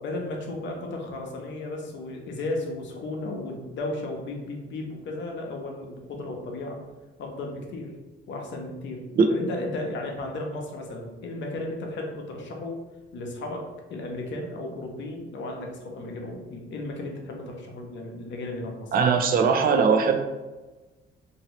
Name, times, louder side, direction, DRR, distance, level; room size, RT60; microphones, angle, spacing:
voice 1, 0.0-6.8 7.2-7.9 8.3-9.0 9.3-12.8 13.1-18.9, left 2 dB, 65° left, 1 dB, 0.8 m, -34 dB
voice 2, 18.9-20.2, right 5 dB, 50° right, 5 dB, 0.4 m, -20 dB
2.9 x 2.7 x 2.9 m, 1.2 s
cardioid pair, 90°, 20 cm